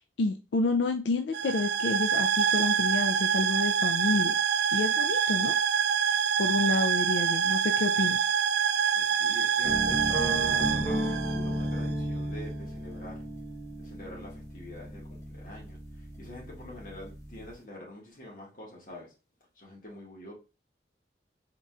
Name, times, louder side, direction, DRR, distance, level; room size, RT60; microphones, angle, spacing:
voice 1, 0.0-4.3 4.7-5.6 6.4-8.2, left 3 dB, 85° left, 0.4 m, -29 dB
sound 1, 1.3-11.9, right 7 dB, 65° right, 0.3 m, -26 dB
voice 2, 8.9-13.2 13.8-19.1 19.6-20.3, left 1 dB, 50° left, 1.7 m, -46 dB
sound 2, 9.6-17.5, equal, 15° left, 1.1 m, -34 dB
4.1 x 3.7 x 2.4 m
head